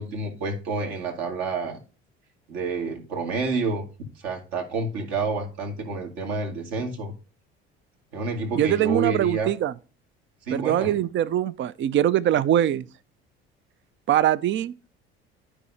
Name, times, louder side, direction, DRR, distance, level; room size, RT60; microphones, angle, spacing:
voice 1, 0.0-1.8 2.5-3.8 4.2-7.1 8.1-9.5 10.5-11.0, right 3 dB, 65° right, 2.0 m, -29 dB
voice 2, 8.5-9.7 10.5-12.9 14.1-14.7, right 11 dB, 40° right, 0.5 m, -22 dB
12.5 x 4.9 x 2.7 m
hypercardioid pair, 60°, 30 cm